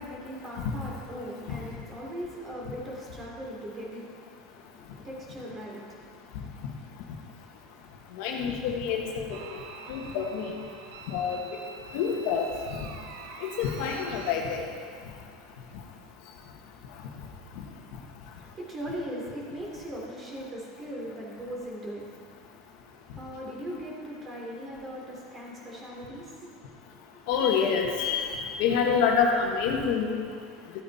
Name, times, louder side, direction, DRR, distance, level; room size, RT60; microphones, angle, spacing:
voice 1, 0.0-6.2 18.2-27.2, equal, 25° right, -3 dB, 3.4 m, -40 dB
voice 2, 8.2-9.4 9.9-10.6 11.1-11.4 11.9-12.5 13.4-14.6 27.3-30.1, left 6 dB, 70° left, 1 dB, 1.6 m, -27 dB
sound 1, 9.3-14.3, right 5 dB, 75° right, 0.9 m, -45 dB
14.0 x 9.0 x 4.3 m, 2.2 s
supercardioid pair, 115°, 0 cm